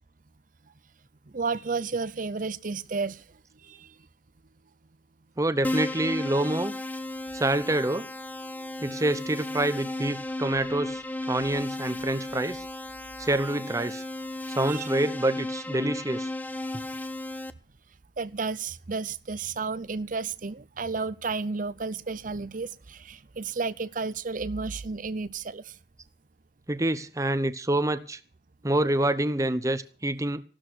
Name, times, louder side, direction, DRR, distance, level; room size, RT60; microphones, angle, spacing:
voice 1, 1.3-3.2 3.6-3.9 8.6-8.7 14.7-14.9 18.2-25.8, right 4 dB, 50° right, 0.7 m, -32 dB
voice 2, 5.4-6.7 7.3-8.1 8.8-12.6 13.2-14.0 14.5-16.3 26.7-28.2 28.6-30.4, right 1 dB, 20° right, 0.8 m, -27 dB
Keyboard (musical), 5.6-17.5, left 2 dB, 10° left, 0.8 m, -34 dB
15.0 x 12.5 x 6.3 m
head